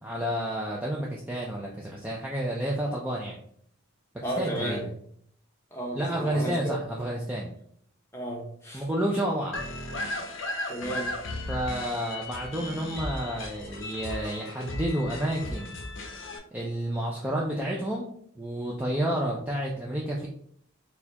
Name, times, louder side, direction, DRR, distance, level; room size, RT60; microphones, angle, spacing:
voice 1, 0.0-3.4 4.1-4.9 6.0-7.5 8.7-9.6 11.5-15.8 16.5-18.1 18.4-20.3, right 1 dB, 5° right, -3 dB, 0.3 m, -30 dB
voice 2, 4.2-4.9 5.7-6.8 8.1-8.8 10.7-11.1, right 1 dB, 10° left, -1 dB, 0.7 m, -33 dB
sound 1, 9.5-16.4, left 1 dB, 60° left, 0.6 m, -36 dB
4.2 x 2.3 x 2.7 m, 0.62 s
head